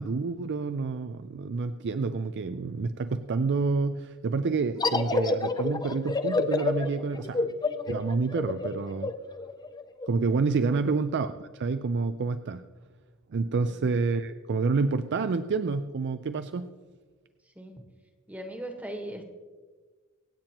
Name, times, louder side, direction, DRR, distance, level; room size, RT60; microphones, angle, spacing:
voice 1, 0.0-7.5 7.9-9.1 10.1-12.6 13.3-16.7, right 4 dB, 55° right, 10 dB, 0.4 m, -28 dB
sound 1, 4.8-10.1, left 3 dB, 20° left, 0.5 m, -29 dB
voice 2, 17.5-17.8 18.3-19.3, right 1 dB, 10° right, 4 dB, 1.3 m, -39 dB
25.5 x 8.7 x 3.0 m, 1.4 s
head